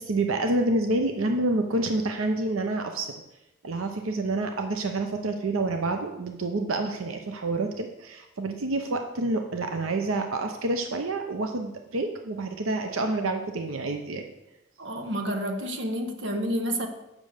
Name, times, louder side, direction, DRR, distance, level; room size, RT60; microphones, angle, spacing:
voice 1, 0.0-3.1 3.6-14.3, right 2 dB, 90° right, 5 dB, 0.7 m, -28 dB
voice 2, 14.8-16.9, equal, 60° right, 5 dB, 1.1 m, -29 dB
7.5 x 6.3 x 6.5 m, 0.95 s
head